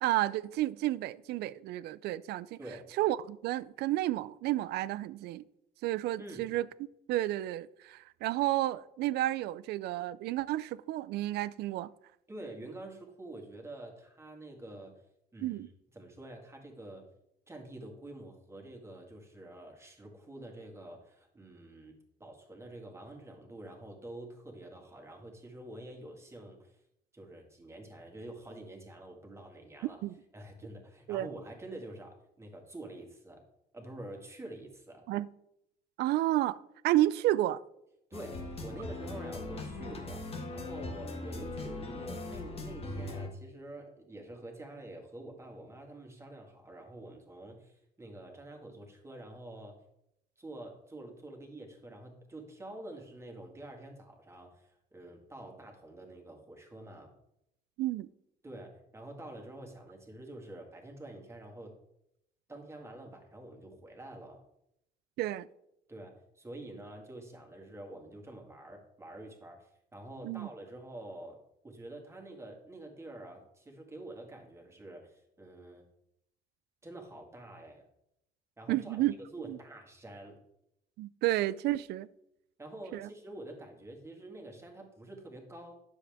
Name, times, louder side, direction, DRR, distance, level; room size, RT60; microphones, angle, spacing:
voice 1, 0.0-2.6 3.0-5.4 5.8-6.7 7.1-11.9 15.4-15.7 30.0-30.1 31.1-31.3 35.1-35.3 36.0-36.6 36.8-37.6 57.8-58.1 65.2-65.5 70.2-70.5 78.7-79.1 79.4-79.6 81.0-82.1 82.9-83.1, right 15 dB, 75° right, 0.4 m, -31 dB
voice 2, 2.6-2.9 6.2-6.5 12.3-14.9 15.3-15.7 15.9-17.1 17.5-26.8 27.1-30.0 30.3-33.4 33.7-35.1 38.1-49.8 50.4-57.1 58.4-61.7 62.5-64.4 65.9-71.4 71.6-75.8 76.8-77.8 78.6-80.4 82.6-85.7, right 1 dB, 15° right, 2.0 m, -47 dB
sound 1, 38.1-43.3, left 2 dB, 35° left, 1.6 m, -40 dB
9.9 x 7.2 x 3.6 m
cardioid pair, 110°, 17 cm